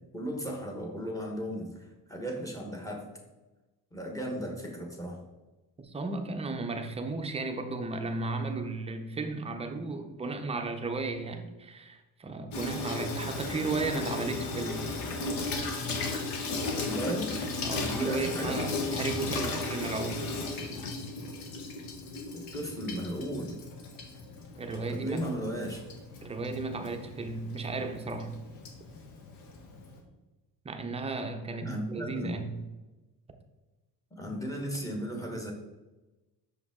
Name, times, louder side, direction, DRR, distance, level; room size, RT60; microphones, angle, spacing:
voice 1, 0.1-3.1 3.9-5.2 16.7-17.3 17.7-18.6 22.3-23.6 24.9-25.8 31.6-32.4 34.2-35.5, equal, 10° left, 0 dB, 1.2 m, -35 dB
voice 2, 5.8-14.9 17.6-20.3 24.6-25.3 26.2-28.4 30.6-32.6, right 3 dB, 15° right, 6 dB, 0.5 m, -34 dB
Water tap faucet / Sink (filling or washing), 12.5-30.0, left 3 dB, 80° left, 1.3 m, -36 dB
6.4 x 5.0 x 3.6 m, 1.1 s
cardioid pair, 150°, 35 cm